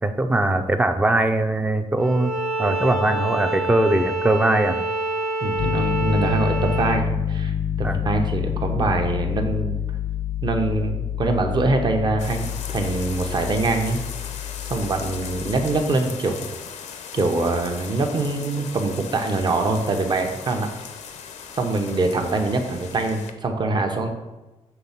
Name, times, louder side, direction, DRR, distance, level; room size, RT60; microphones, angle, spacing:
voice 1, 0.0-2.3 2.6-4.8 7.8-8.0, right 2 dB, 15° right, 8 dB, 0.5 m, -21 dB
Bowed string instrument, 2.0-7.0, right 2 dB, 80° right, 1.5 m, -27 dB
voice 2, 5.4-9.8 10.4-14.0 14.7-16.4 17.1-20.7 21.5-24.1, right 3 dB, 40° right, 4 dB, 0.9 m, -24 dB
Piano, 5.6-15.8, left 8 dB, 45° left, 0.4 m, -28 dB
sound 1, 12.2-23.3, left 7 dB, 85° left, 0.7 m, -38 dB
6.8 x 3.5 x 5.8 m, 1.1 s
cardioid pair, 110°, 12 cm